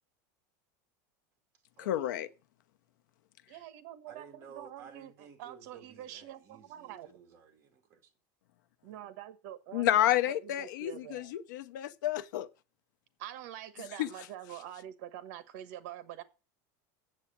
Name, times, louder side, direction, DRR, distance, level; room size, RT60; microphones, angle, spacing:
voice 1, 1.8-2.3 9.7-12.5 14.0-14.1, left 13 dB, 90° left, 0.8 m, -30 dB
voice 2, 3.5-7.1 8.8-11.3 13.2-16.2, right 12 dB, 55° right, 1.2 m, -46 dB
voice 3, 4.1-8.1, right 6 dB, 25° right, 2.3 m, -54 dB
8.4 x 7.6 x 7.3 m
supercardioid pair, 175°, 10 cm